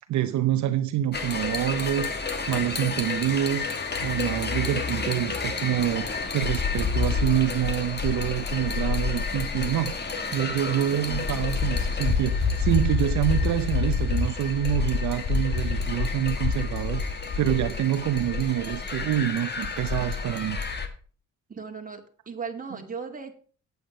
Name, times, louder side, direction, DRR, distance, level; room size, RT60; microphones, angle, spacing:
voice 1, 0.1-3.6 4.0-9.9 10.3-20.6, right 12 dB, 70° right, 0.8 m, -27 dB
sound 1, 1.1-20.9, left 5 dB, 35° left, 1.8 m, -28 dB
voice 2, 11.1-11.4 21.5-23.3, right 5 dB, 25° right, 2.2 m, -37 dB
9.4 x 8.5 x 5.1 m
cardioid pair, 90°, 30 cm